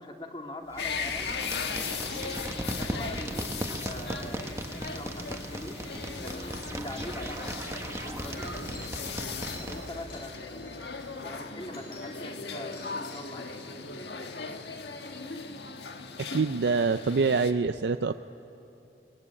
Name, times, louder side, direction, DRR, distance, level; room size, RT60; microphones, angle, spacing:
voice 1, 0.0-1.3 1.9-4.5 4.8-5.9 6.1-8.7 9.6-10.9 11.2-13.5, left 1 dB, 30° left, 2 dB, 2.2 m, -42 dB
sound 1, 0.7-10.1, right 1 dB, 15° right, 1.3 m, -37 dB
sound 2, 0.8-17.5, left 5 dB, 75° left, 1.5 m, -38 dB
sound 3, 8.0-12.4 12.7-15.6, left 2 dB, 55° left, 6.9 m, -51 dB
voice 2, 16.2-18.1, right 4 dB, 80° right, 10 dB, 0.5 m, -25 dB
24.0 x 20.0 x 9.7 m, 2.8 s
head